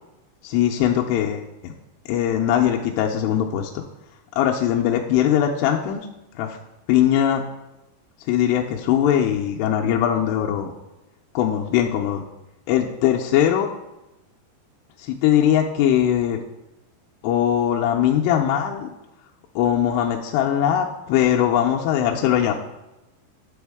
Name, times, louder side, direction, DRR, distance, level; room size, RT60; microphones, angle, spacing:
voice 1, 0.4-1.7 2.1-3.8 4.4-6.1 6.4-6.6 6.9-7.4 8.3-10.7 11.3-12.2 12.7-13.7 15.0-16.4 17.2-18.9 19.6-22.6, left 10 dB, 85° left, 0 dB, 2.7 m, -20 dB
9.4 x 6.1 x 3.5 m, 0.96 s
omnidirectional pair, 4.8 m